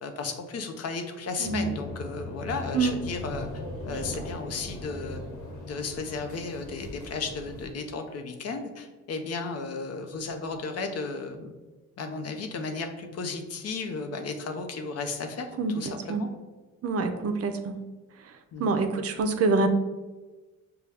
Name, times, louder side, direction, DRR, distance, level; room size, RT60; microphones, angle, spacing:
voice 1, 0.0-3.5 3.8-5.2 5.6-11.5 12.0-16.3 18.5-18.7, left 4 dB, 55° left, 5 dB, 0.7 m, -34 dB
sound 1, 1.4-7.7, left 2 dB, 85° left, 1.2 m, -38 dB
voice 2, 15.6-16.2 16.8-17.8 18.6-19.7, right 3 dB, 50° right, 7 dB, 0.5 m, -26 dB
5.3 x 2.3 x 3.3 m, 1.2 s
cardioid pair, 90°, 30 cm